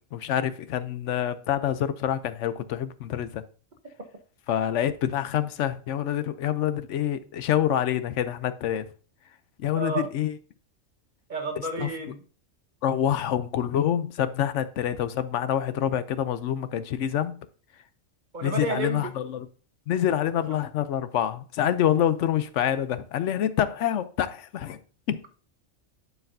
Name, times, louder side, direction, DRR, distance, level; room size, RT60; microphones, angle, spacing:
voice 1, 0.1-3.4 4.5-8.8 9.6-10.3 11.8-11.9 12.8-17.4 18.4-19.5 19.9-24.8 25.1-25.2, left 10 dB, 70° left, 0.9 m, -26 dB
voice 2, 9.7-10.1 11.3-12.2 18.3-19.1 20.5-20.6, right 2 dB, 40° right, 1.1 m, -31 dB
11.0 x 4.8 x 2.6 m
omnidirectional pair, 1.4 m